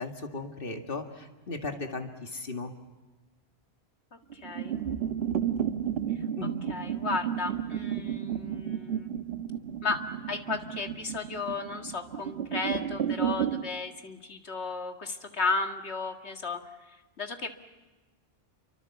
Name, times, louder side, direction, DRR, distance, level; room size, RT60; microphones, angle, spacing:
voice 1, 0.0-2.7 6.4-6.5, left 3 dB, 55° left, 4 dB, 2.3 m, -36 dB
voice 2, 4.3-4.7 6.1-6.2 6.7-9.1 9.8-10.0 10.3-16.6 17.2-17.5, left 4 dB, 85° left, 5 dB, 2.2 m, -34 dB
sound 1, 4.3-13.6, right 9 dB, 70° right, 1.5 m, -32 dB
28.0 x 25.0 x 7.1 m, 1.2 s
omnidirectional pair, 1.1 m